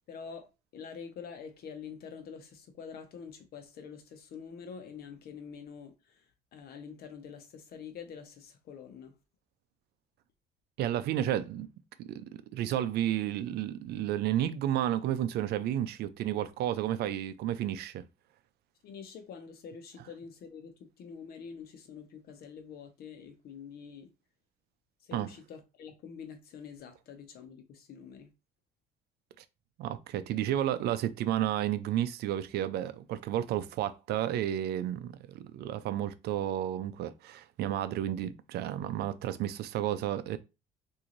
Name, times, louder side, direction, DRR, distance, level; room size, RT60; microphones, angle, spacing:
voice 1, 0.1-9.1 18.8-24.1 25.0-28.3, left 6 dB, 65° left, 0.9 m, -46 dB
voice 2, 10.8-11.7 12.0-12.3 12.5-18.0 25.1-25.3 29.4-29.5 29.8-40.4, right 11 dB, 75° right, 0.5 m, -32 dB
3.8 x 2.7 x 3.0 m
cardioid pair, 110°, 17 cm